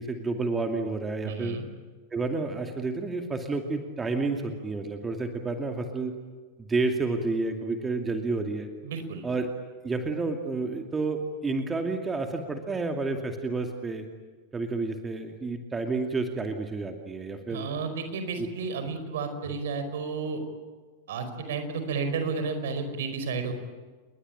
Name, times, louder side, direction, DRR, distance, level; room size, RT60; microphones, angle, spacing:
voice 1, 0.0-1.6 2.1-6.1 6.7-8.7 9.2-9.5 9.8-14.1 14.5-17.7 18.4-18.5, right 3 dB, 15° right, 4 dB, 2.5 m, -30 dB
voice 2, 1.2-1.6 8.8-9.2 17.5-20.4 21.1-23.5, right 4 dB, 60° right, 8 dB, 5.0 m, -32 dB
29.5 x 21.5 x 8.9 m, 1.4 s
figure-of-eight pair, 90°, 0 cm